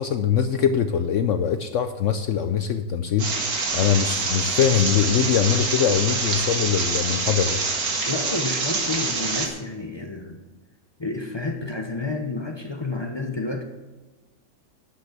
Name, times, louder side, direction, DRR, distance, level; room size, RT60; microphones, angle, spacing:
voice 1, 0.0-3.3 3.7-7.6, left 8 dB, 90° left, 9 dB, 0.6 m, -22 dB
sound 1, 3.2-9.5, right 4 dB, 55° right, 2.0 m, -26 dB
voice 2, 8.0-10.4 11.0-13.6, left 3 dB, 30° left, 4 dB, 0.4 m, -30 dB
12.0 x 6.2 x 7.4 m, 1.2 s
omnidirectional pair, 2.0 m